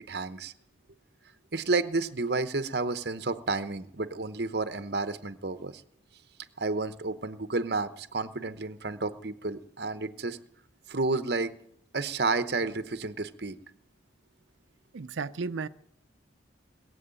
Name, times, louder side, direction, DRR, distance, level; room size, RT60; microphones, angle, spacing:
voice 1, 0.1-0.5 1.5-5.8 6.6-10.4 10.9-11.5 11.9-13.6, right 3 dB, 55° right, 0.9 m, -31 dB
voice 2, 14.9-15.7, right 4 dB, 80° right, 0.5 m, -33 dB
20.5 x 7.8 x 8.9 m
head